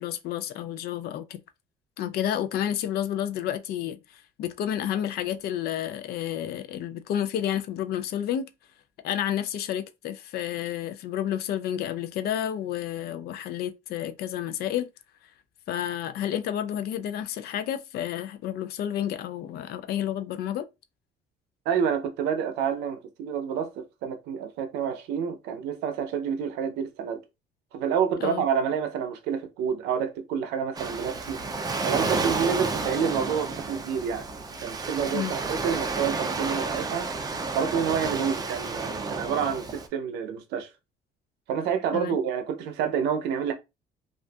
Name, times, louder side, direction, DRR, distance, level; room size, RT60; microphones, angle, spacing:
voice 1, 0.0-1.4 2.0-8.5 9.0-14.9 15.7-20.7 28.2-28.4 35.1-35.3 41.9-42.2, left 10 dB, 70° left, 0.4 m, -30 dB
voice 2, 21.7-27.2 27.7-31.4 31.8-34.3 34.6-37.1 37.5-40.7 41.5-43.5, right 7 dB, 90° right, 0.6 m, -28 dB
Waves surf, 30.7-39.9, right 3 dB, 20° right, 0.4 m, -31 dB
2.5 x 2.4 x 2.2 m
cardioid pair, 110°, 17 cm